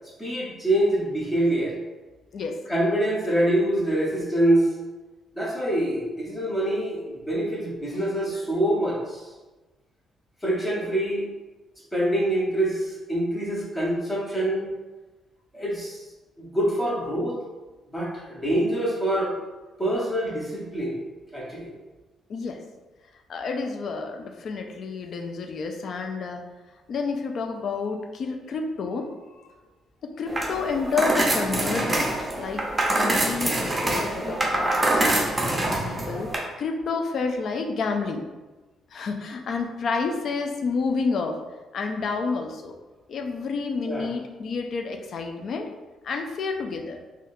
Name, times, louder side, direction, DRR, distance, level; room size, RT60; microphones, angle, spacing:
voice 1, 0.2-1.8 2.7-4.7 5.3-9.3 10.4-11.3 11.9-14.7 15.5-16.0 16.4-17.4 17.9-19.4 19.8-21.0 21.3-21.7 43.8-44.0, right 1 dB, 15° left, -5 dB, 1.1 m, -25 dB
voice 2, 22.3-22.6 23.3-26.4 26.9-29.2 30.0-38.3 38.9-41.4 41.7-42.8 43.1-45.7 46.0-47.0, left 4 dB, 60° left, 5 dB, 0.4 m, -30 dB
sound 1, 30.3-36.4, right 1 dB, 25° right, 0.7 m, -25 dB
3.6 x 2.3 x 2.6 m, 1.2 s
cardioid pair, 90°, 0 cm